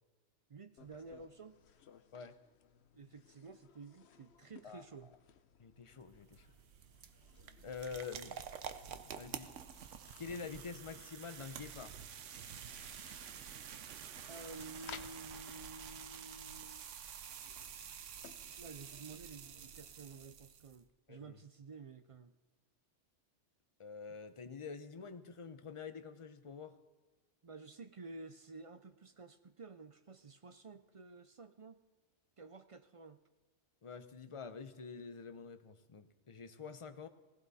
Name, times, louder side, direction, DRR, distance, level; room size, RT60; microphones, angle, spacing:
voice 1, 0.5-1.6 2.9-5.1 14.3-17.0 17.5-17.6 18.6-22.3 27.4-31.8 32.4-33.2, right 3 dB, 50° right, 10 dB, 0.4 m, -52 dB
sound 1, 0.8-20.2, left 8 dB, 65° left, 1.0 m, -60 dB
voice 2, 5.6-6.5 7.6-8.4 9.2-9.5 10.2-12.0 21.1-21.4 23.8-26.8 33.8-37.1, left 5 dB, 30° left, 10 dB, 0.7 m, -47 dB
sound 2, 5.9-20.8, right 8 dB, 90° right, 1.1 m, -49 dB
17.5 x 16.0 x 4.1 m, 1.2 s
omnidirectional pair, 1.2 m